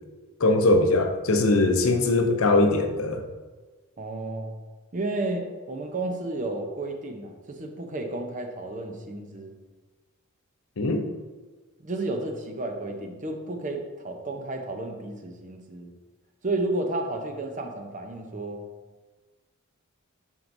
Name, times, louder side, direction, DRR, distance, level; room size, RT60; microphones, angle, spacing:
voice 1, 0.4-3.2 10.8-11.0, left 2 dB, 65° left, 5 dB, 0.7 m, -21 dB
voice 2, 4.0-4.5 4.9-9.6 11.8-15.9 16.4-18.6, right 2 dB, 35° right, 3 dB, 0.7 m, -32 dB
7.5 x 5.3 x 2.7 m, 1.3 s
head